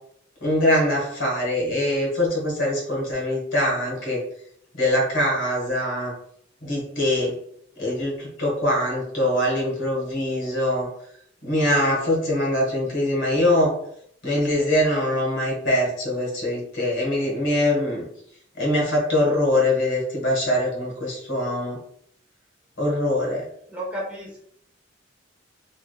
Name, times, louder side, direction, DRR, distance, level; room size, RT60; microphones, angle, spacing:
voice 1, 0.4-4.2 4.8-6.1 6.6-7.4 7.8-10.9 11.4-13.8 14.2-18.1 18.6-21.8 22.8-23.5, left 1 dB, 65° left, -3 dB, 1.5 m, -23 dB
voice 2, 23.7-24.4, equal, 5° right, -4 dB, 0.9 m, -32 dB
3.4 x 2.6 x 2.3 m, 0.68 s
head